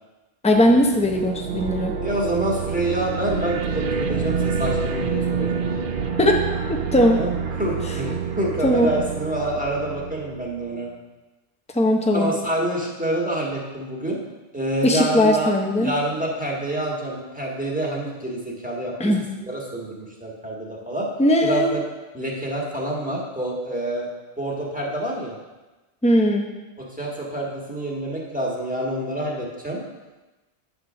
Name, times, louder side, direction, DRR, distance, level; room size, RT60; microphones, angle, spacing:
voice 1, 0.4-1.9 6.2-6.4 6.7-7.2 8.6-8.9 11.7-12.3 14.8-15.9 19.0-19.2 21.2-21.8 26.0-26.5, equal, 10° left, 3 dB, 0.5 m, -19 dB
sound 1, 0.6-10.8, right 5 dB, 55° right, 0.8 m, -27 dB
voice 2, 2.0-5.9 7.1-7.3 7.6-10.9 12.1-14.2 14.5-15.5 15.8-18.9 19.5-21.1 21.4-21.8 22.1-24.1 24.4-25.4 26.8-29.8, right 1 dB, 10° right, -3 dB, 1.4 m, -27 dB
9.3 x 3.6 x 6.0 m, 1.1 s
omnidirectional pair, 1.1 m